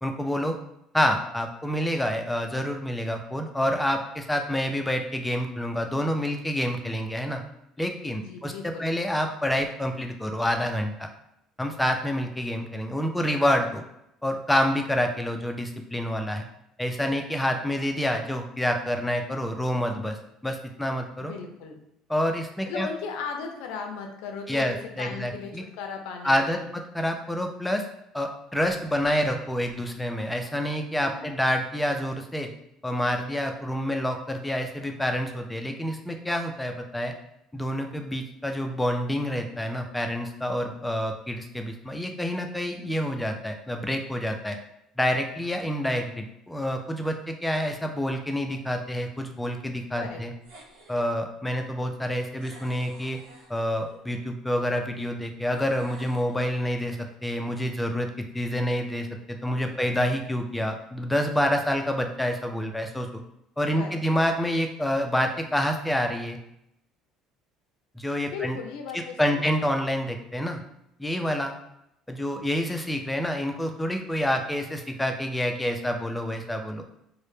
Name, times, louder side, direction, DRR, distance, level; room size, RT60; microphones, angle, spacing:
voice 1, 0.0-0.5 0.9-7.4 7.8-8.5 8.8-11.1 11.6-13.8 14.2-16.4 16.8-20.2 20.4-21.3 22.1-22.9 24.5-25.6 26.2-27.8 28.1-32.5 32.8-37.1 37.5-44.6 45.0-50.3 50.9-53.2 53.5-63.2 63.6-66.4 68.0-68.6 69.2-70.6 71.0-71.5 72.1-76.8, equal, 5° left, 4 dB, 0.3 m, -28 dB
voice 2, 8.1-8.9 21.2-21.8 22.7-25.5 25.8-26.7 31.0-31.3 50.0-50.2 59.7-59.9 63.8-64.0 68.3-69.5, left 5 dB, 85° left, 4 dB, 0.4 m, -37 dB
sound 1, 50.4-51.1 52.4-54.0 55.5-57.0, right 1 dB, 80° right, 0.7 m, -50 dB
2.0 x 2.0 x 3.0 m, 0.80 s
cardioid pair, 115°, 0 cm